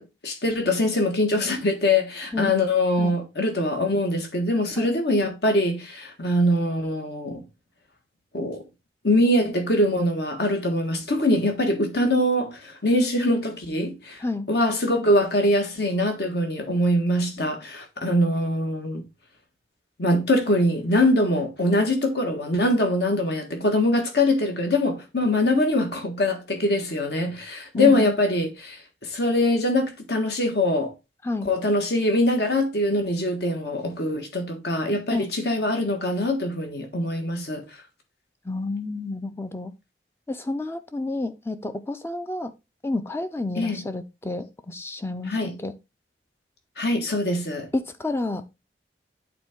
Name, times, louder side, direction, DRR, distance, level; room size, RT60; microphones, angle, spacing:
voice 1, 0.0-7.4 8.3-8.6 9.0-19.0 20.0-30.9 31.4-37.6 43.6-43.8 45.3-45.5 46.8-47.7, left 1 dB, 60° left, 1.5 m, -23 dB
voice 2, 27.8-28.2 31.2-31.5 35.1-35.2 38.4-39.7 40.3-42.5 42.8-45.7 47.7-48.5, left 2 dB, 15° left, 0.4 m, -30 dB
8.6 x 3.8 x 3.6 m
head